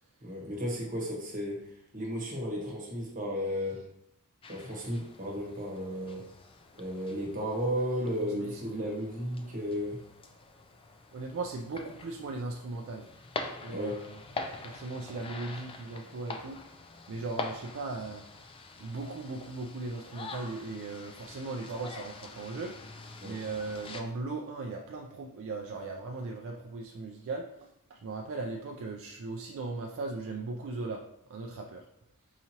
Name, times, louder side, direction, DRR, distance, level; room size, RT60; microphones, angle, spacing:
voice 1, 0.2-3.9 4.5-6.3 6.8-10.0 13.7-14.0 23.2-23.4, equal, 35° right, -3 dB, 1.1 m, -34 dB
sound 1, 4.4-24.0, left 3 dB, 25° left, 0.3 m, -45 dB
voice 2, 8.4-8.9 11.1-13.1 13.6-14.2 14.6-16.6 17.1-18.2 18.8-22.7 23.2-31.0 31.3-31.9, right 3 dB, 60° right, 0 dB, 0.4 m, -38 dB
4.8 x 2.8 x 2.8 m, 0.76 s
head